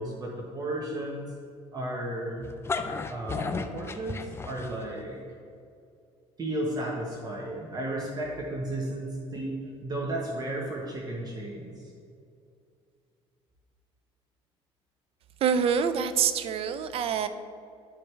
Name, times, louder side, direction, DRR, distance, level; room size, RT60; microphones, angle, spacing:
voice 1, 0.0-1.3 1.7-2.5 3.1-5.2 6.4-11.9, right 1 dB, 35° right, -2 dB, 1.1 m, -34 dB
sound 1, 2.4-5.0, left 4 dB, 20° left, 0.4 m, -33 dB
voice 2, 15.4-17.3, right 7 dB, 55° right, 11 dB, 0.5 m, -26 dB
10.5 x 4.6 x 3.3 m, 2.4 s
cardioid pair, 105°, 12 cm